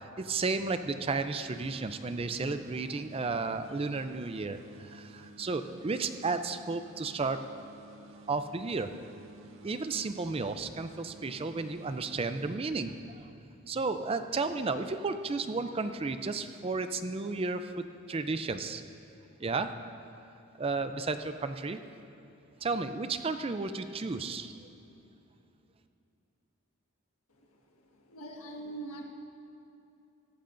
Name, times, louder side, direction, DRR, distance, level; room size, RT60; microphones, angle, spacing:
voice 1, 0.2-7.4 8.3-8.9 9.6-13.3 13.7-18.8 19.4-19.7 20.6-21.8 22.6-24.7, right 3 dB, 25° right, 9 dB, 0.4 m, -33 dB
sound 1, 1.5-13.2, right 2 dB, 65° right, 0.9 m, -53 dB
voice 2, 27.4-29.0, right 2 dB, 85° left, 0 dB, 1.6 m, -44 dB
17.0 x 14.0 x 2.6 m, 2.8 s
head